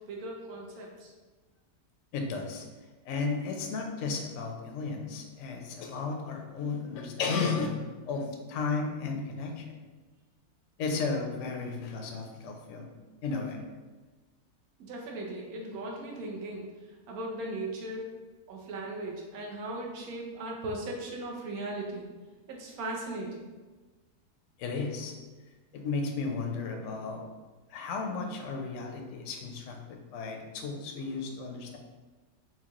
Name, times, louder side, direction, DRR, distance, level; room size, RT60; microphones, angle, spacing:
voice 1, 0.1-1.1 14.8-18.0 18.5-22.1 22.5-23.5, right 2 dB, 70° right, -1 dB, 1.1 m, -38 dB
voice 2, 2.1-2.6 3.0-7.7 8.1-9.7 10.8-12.9 13.2-13.6 24.6-25.1 25.7-27.2 27.7-31.8, left 4 dB, 65° left, 3 dB, 0.8 m, -34 dB
4.4 x 2.3 x 2.9 m, 1.3 s
omnidirectional pair, 1.6 m